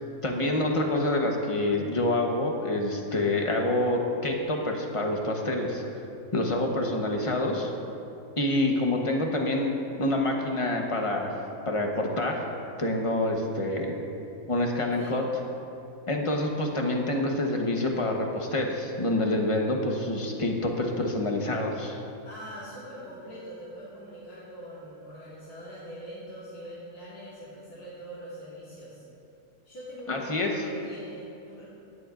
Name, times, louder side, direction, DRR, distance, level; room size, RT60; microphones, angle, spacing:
voice 1, 0.2-5.8 6.3-7.7 8.4-11.4 11.6-12.5 12.8-14.0 14.5-15.2 16.1-22.0 30.1-30.5, left 1 dB, 25° left, 1 dB, 0.9 m, -27 dB
voice 2, 22.2-29.1 29.7-31.6, equal, 75° left, -9 dB, 2.2 m, -43 dB
17.0 x 10.5 x 2.5 m, 2.7 s
omnidirectional pair, 1.6 m